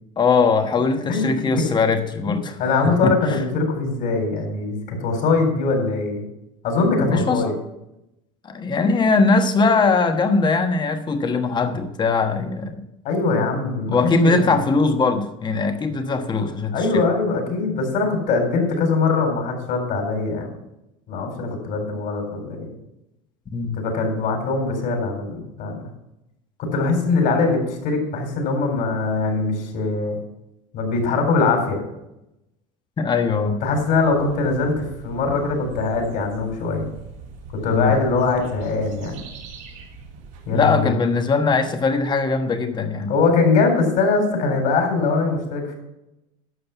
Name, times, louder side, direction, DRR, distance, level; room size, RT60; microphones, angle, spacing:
voice 1, 0.2-2.6 2.8-3.2 7.0-7.6 8.4-12.8 13.8-17.0 23.5-23.8 33.0-33.6 37.7-38.0 40.5-43.1, left 4 dB, 25° left, 7 dB, 1.2 m, -20 dB
voice 2, 1.1-1.6 2.3-6.2 6.6-7.5 13.0-14.7 16.7-20.5 21.1-22.7 23.8-25.9 26.6-30.2 30.7-31.8 33.6-36.9 37.6-39.2 40.5-40.9 43.1-45.7, left 3 dB, 60° left, 3 dB, 4.0 m, -22 dB
sound 1, 33.6-40.7, right 5 dB, 80° right, 3.2 m, -41 dB
11.5 x 6.7 x 5.9 m, 0.88 s
supercardioid pair, 115°, 17 cm